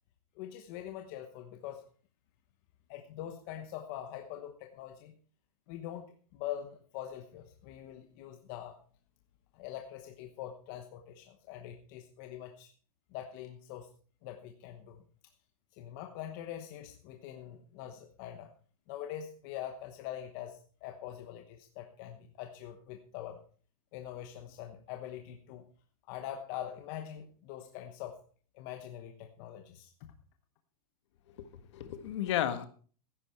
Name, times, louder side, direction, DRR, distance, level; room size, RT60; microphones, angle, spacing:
voice 1, 0.3-1.9 2.9-5.1 5.7-8.8 9.5-12.7 13.1-13.9 14.2-15.0 15.7-18.5 18.9-23.4 23.9-25.6 26.1-28.2 28.5-30.1, left 11 dB, 30° left, 5 dB, 1.1 m, -43 dB
voice 2, 31.4-32.7, left 11 dB, 45° left, 11 dB, 1.5 m, -33 dB
14.5 x 11.0 x 4.5 m, 0.41 s
supercardioid pair, 175°, 20 cm